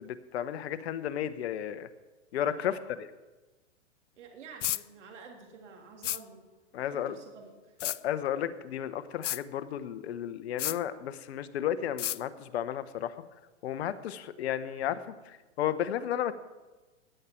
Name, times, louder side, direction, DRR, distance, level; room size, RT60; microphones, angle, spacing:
voice 1, 0.0-1.9 2.3-2.8 6.7-7.1 7.8-13.2 13.6-16.3, left 10 dB, 60° left, 13 dB, 1.0 m, -33 dB
voice 2, 4.2-6.5 6.9-7.8, right 5 dB, 75° right, 2 dB, 3.1 m, -50 dB
sound 1, 4.6-4.8 6.0-6.2 7.8-8.0 9.2-9.4 10.6-10.8 12.0-12.2, left 13 dB, 80° left, 0.5 m, -31 dB
16.0 x 10.0 x 4.5 m, 1.2 s
hypercardioid pair, 130°, 37 cm